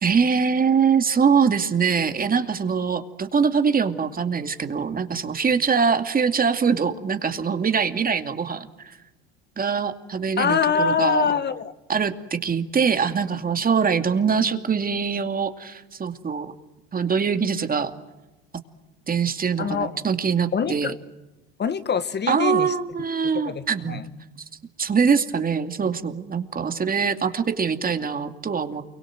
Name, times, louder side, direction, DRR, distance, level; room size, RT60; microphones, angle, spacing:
voice 1, 0.0-9.0 9.6-11.3 11.9-16.5 16.9-17.9 19.1-20.9 22.3-24.0 24.8-28.8, right 6 dB, 30° right, 8 dB, 2.5 m, -23 dB
voice 2, 10.4-11.7 19.6-19.9 20.5-21.0 21.6-22.7 23.4-24.1, left 6 dB, 35° left, 12 dB, 1.5 m, -24 dB
29.0 x 23.5 x 8.0 m, 1.0 s
hypercardioid pair, 80°, 30 cm